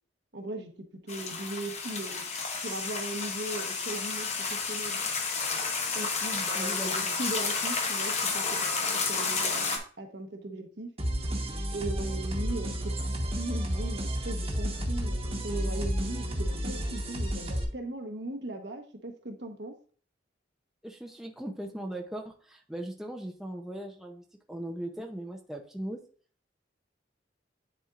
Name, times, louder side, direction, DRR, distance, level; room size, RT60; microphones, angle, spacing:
voice 1, 0.3-0.7 1.0-2.2 2.6-5.0 5.9-10.9 11.7-19.7, right 2 dB, 65° right, 4 dB, 1.1 m, -38 dB
sound 1, 1.1-9.8, left 4 dB, 40° left, 1.0 m, -31 dB
voice 2, 6.5-7.2 16.7-16.8 20.8-26.0, right 1 dB, 5° right, 1 dB, 0.7 m, -39 dB
sound 2, 11.0-17.6, equal, 30° right, 1.2 m, -31 dB
10.0 x 4.4 x 2.5 m, 0.42 s
head